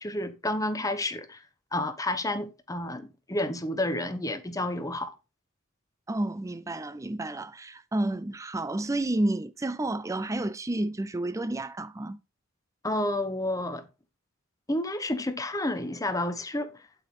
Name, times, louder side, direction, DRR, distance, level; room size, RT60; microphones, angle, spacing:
voice 1, 0.0-1.4 1.7-5.1 12.8-13.8 14.7-16.7, left 1 dB, 15° left, 1.0 m, -30 dB
voice 2, 6.1-12.2, right 1 dB, 15° right, 0.5 m, -30 dB
8.6 x 8.6 x 3.7 m
head